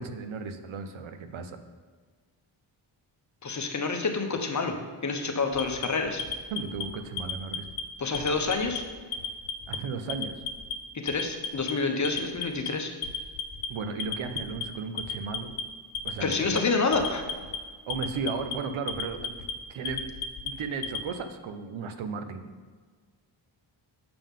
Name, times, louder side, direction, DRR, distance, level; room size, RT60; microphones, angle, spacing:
voice 1, 0.0-1.6 6.5-7.7 9.7-10.4 13.7-15.5 16.0-16.6 17.9-19.3 19.7-20.1 20.4-22.4, right 4 dB, 75° right, 8 dB, 0.7 m, -35 dB
voice 2, 3.4-4.7 5.0-6.2 8.0-8.8 10.9-12.9 16.2-17.2, left 4 dB, 35° left, 4 dB, 0.9 m, -28 dB
Alarm, 5.5-6.8 7.2-7.8 8.1-8.8 9.1-9.8 10.1-10.7 11.1-11.7 12.0-12.7 13.0-13.7 14.0-14.6 15.0-15.6 15.9-16.6 16.9-17.6 17.9-18.5 18.9-19.5 19.8-21.0, left 6 dB, 85° left, 0.8 m, -33 dB
6.9 x 5.6 x 3.6 m, 1.5 s
cardioid pair, 85°, 49 cm